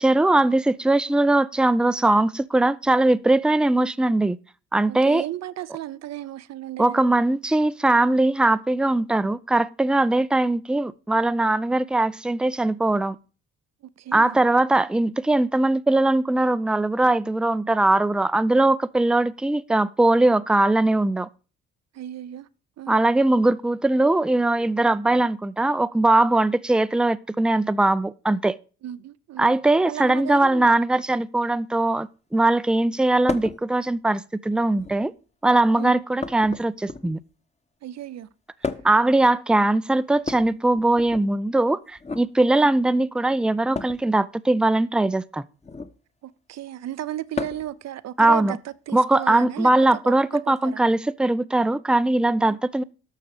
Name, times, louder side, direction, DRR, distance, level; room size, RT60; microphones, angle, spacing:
voice 1, 0.0-4.4 4.7-5.2 6.8-13.2 14.1-21.3 22.9-28.6 29.4-35.1 35.4-37.2 38.8-45.4 48.2-48.6 48.9-52.8, right 2 dB, 5° right, 0.5 m, -20 dB
voice 2, 4.9-7.0 14.0-14.4 21.9-22.5 22.8-23.0 28.8-29.6 29.9-30.7 35.8-36.0 37.8-38.3 42.5-42.7 46.2-50.8 52.5-52.6, right 12 dB, 55° right, 0.7 m, -35 dB
sound 1, 33.3-33.6 34.7-35.2 36.2-37.3 38.6-39.1 40.2-41.3 42.0-42.3 43.7-44.0 45.6-46.0 47.3-47.8 49.2-49.3 50.6-50.7, left 4 dB, 20° left, 1.2 m, -33 dB
12.0 x 6.6 x 4.9 m
hypercardioid pair, 45°, 32 cm